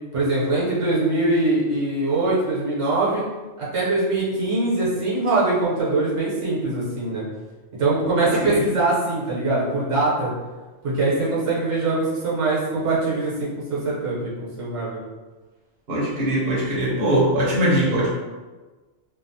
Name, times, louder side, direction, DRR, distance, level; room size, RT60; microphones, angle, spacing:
voice 1, 0.1-3.2 3.6-7.2 7.8-10.3 10.8-15.0, right 2 dB, 75° right, -7 dB, 1.3 m, -22 dB
voice 2, 15.9-18.1, right 1 dB, 55° right, -7 dB, 0.9 m, -21 dB
2.9 x 2.0 x 2.6 m, 1.3 s
omnidirectional pair, 1.3 m